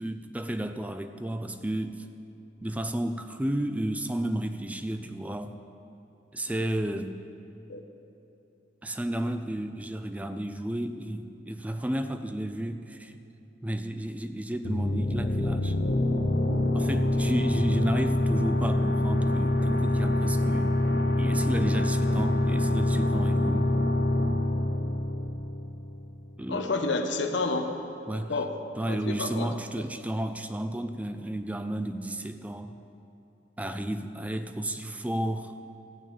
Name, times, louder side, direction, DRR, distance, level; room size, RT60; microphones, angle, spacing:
voice 1, 0.0-2.1 2.6-5.6 6.3-7.2 8.8-13.2 13.6-15.8 16.7-20.8 21.2-23.7 26.4-26.7 28.1-28.4 28.8-32.8 33.6-35.5, right 1 dB, 10° right, 9 dB, 0.4 m, -32 dB
sound 1, 14.6-26.0, left 1 dB, 55° left, 0.7 m, -25 dB
voice 2, 26.5-27.7 28.3-28.6 28.9-29.5, left 3 dB, 85° left, 5 dB, 1.0 m, -29 dB
15.0 x 6.0 x 8.6 m, 2.8 s
head